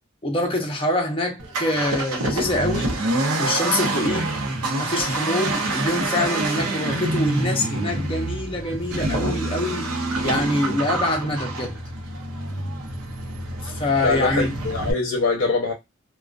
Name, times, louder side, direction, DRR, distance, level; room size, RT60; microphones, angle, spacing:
voice 1, 0.2-2.9 3.4-4.3 4.8-11.8 13.6-14.6, left 1 dB, 25° left, 0.6 m, -25 dB
Accelerating revving vroom, 1.4-14.9, right 2 dB, 90° right, 0.7 m, -26 dB
voice 2, 14.0-15.7, left 3 dB, 65° left, 0.6 m, -23 dB
2.4 x 2.2 x 2.3 m
head